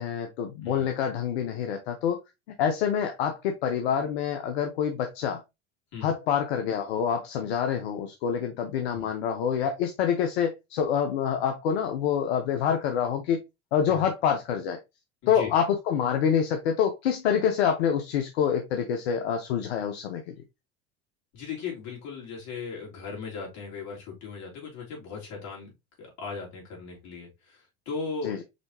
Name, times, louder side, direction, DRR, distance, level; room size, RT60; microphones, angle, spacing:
voice 1, 0.0-2.2 2.6-5.4 6.0-13.4 13.7-14.8 15.3-20.3 28.2-28.4, left 8 dB, 80° left, 0.8 m, -26 dB
voice 2, 15.2-15.5 21.3-25.7 26.0-28.4, left 5 dB, 60° left, 3.3 m, -37 dB
5.2 x 3.4 x 2.9 m
hypercardioid pair, 80°, 32 cm